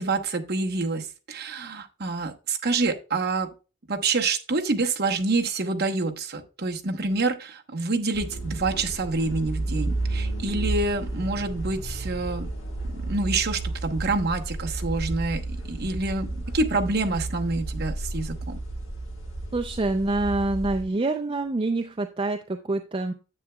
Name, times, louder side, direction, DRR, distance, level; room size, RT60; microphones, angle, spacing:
voice 1, 0.0-3.5 3.9-12.5 12.9-18.6, right 3 dB, 45° right, 3 dB, 1.0 m, -27 dB
sound 1, 8.1-20.8, right 2 dB, 65° left, 1.7 m, -32 dB
voice 2, 19.5-23.1, right 2 dB, 25° right, 4 dB, 0.4 m, -26 dB
9.9 x 8.0 x 2.2 m, 0.32 s
head